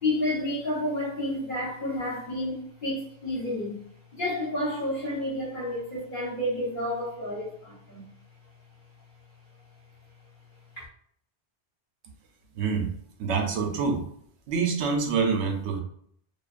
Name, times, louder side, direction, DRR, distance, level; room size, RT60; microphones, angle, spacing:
voice 1, 0.0-3.8 4.1-8.1 10.8-10.9, left 1 dB, 50° left, -7 dB, 1.0 m, -30 dB
voice 2, 12.6-12.9 13.2-14.0 14.5-15.8, right 5 dB, 85° right, 3 dB, 0.9 m, -26 dB
2.4 x 2.3 x 2.4 m, 0.65 s
omnidirectional pair, 1.1 m